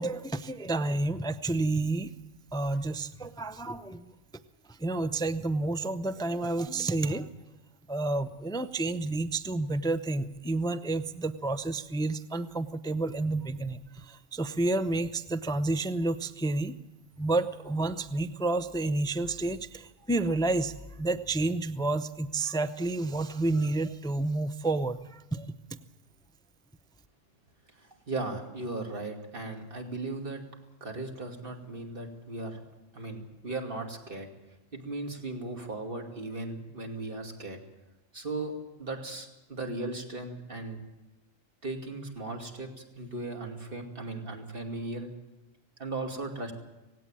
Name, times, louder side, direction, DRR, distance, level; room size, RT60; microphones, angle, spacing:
voice 1, 0.0-2.1 2.5-4.1 4.7-7.3 7.9-16.7 17.2-25.5, right 2 dB, 5° left, 12 dB, 0.3 m, -30 dB
voice 2, 27.8-30.4 30.8-32.6 32.9-34.3 34.7-37.6 38.1-38.5 38.8-40.8 41.6-45.1 45.8-46.5, right 2 dB, 45° right, 2 dB, 2.7 m, -37 dB
18.0 x 17.0 x 8.9 m, 1.0 s
omnidirectional pair, 1.3 m